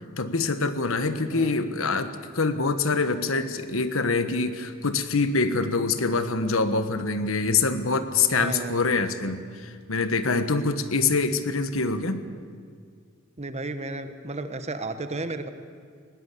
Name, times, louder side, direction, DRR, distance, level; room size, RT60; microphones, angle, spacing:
voice 1, 0.2-12.2, left 4 dB, 75° left, 10 dB, 1.3 m, -25 dB
voice 2, 1.3-1.6 8.3-9.0 13.4-15.5, right 2 dB, 30° right, 9 dB, 1.2 m, -33 dB
21.0 x 17.5 x 8.4 m, 2.1 s
head